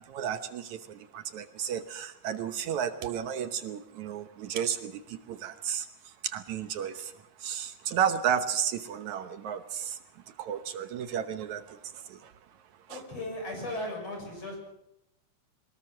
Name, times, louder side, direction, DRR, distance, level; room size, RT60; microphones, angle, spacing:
voice 1, 0.1-5.9 6.2-7.1 7.4-10.0 10.4-11.8 12.1-12.3 12.9-13.0, right 8 dB, 70° right, 9 dB, 2.3 m, -33 dB
voice 2, 12.9-14.6, left 1 dB, 50° left, 2 dB, 8.1 m, -36 dB
23.0 x 20.5 x 6.4 m, 0.85 s
omnidirectional pair, 3.6 m